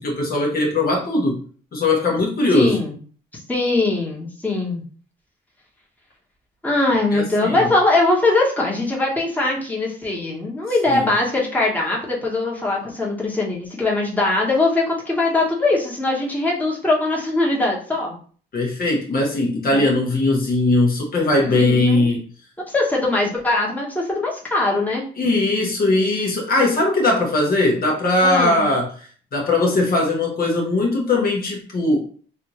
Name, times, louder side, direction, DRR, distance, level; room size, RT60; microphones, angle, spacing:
voice 1, 0.0-1.4 1.7-2.8 7.1-7.7 10.9-11.1 18.5-22.2 25.2-32.1, left 2 dB, 50° left, -1 dB, 1.0 m, -20 dB
voice 2, 2.5-2.9 3.5-4.8 6.6-18.1 19.6-19.9 21.4-22.1 22.7-25.0 28.2-28.7, left 2 dB, 10° left, -3 dB, 1.1 m, -21 dB
3.3 x 2.7 x 3.0 m, 0.43 s
cardioid pair, 90°, 20 cm